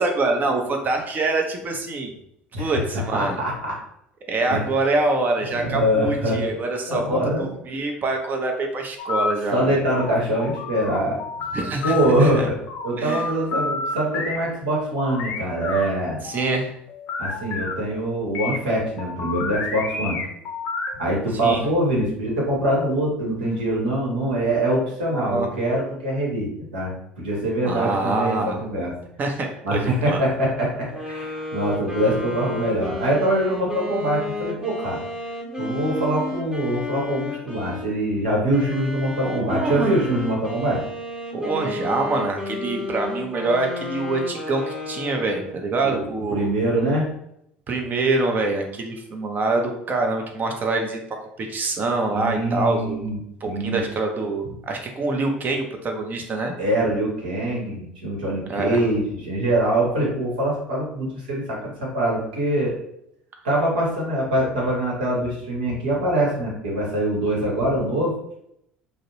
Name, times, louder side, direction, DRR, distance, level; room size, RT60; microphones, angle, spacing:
voice 1, 0.0-2.1 2.6-3.4 4.3-9.8 11.5-11.9 12.2-12.5 13.0-13.2 16.2-16.7 21.4-21.6 25.1-25.5 27.7-28.6 29.2-30.2 39.3-39.9 41.3-46.5 47.7-51.0 51.4-53.0 53.4-56.5 58.5-58.8, right 3 dB, 35° right, 3 dB, 0.6 m, -25 dB
voice 2, 2.5-3.8 4.5-4.6 5.4-6.4 6.8-7.5 9.5-11.2 11.8-12.6 12.8-16.2 17.2-20.2 21.0-28.9 29.6-35.0 35.6-40.8 45.8-47.1 52.1-53.8 56.6-62.8 63.4-68.2, right 1 dB, 80° right, -4 dB, 0.9 m, -24 dB
sound 1, 9.0-9.3 9.7-12.3 12.7-14.4 14.8-17.7 18.4-21.1, left 4 dB, 60° left, 0.5 m, -30 dB
sound 2, 30.9-37.9 38.5-45.7, left 2 dB, 15° right, 1.0 m, -32 dB
2.5 x 2.0 x 2.9 m, 0.77 s
hypercardioid pair, 65°, 5 cm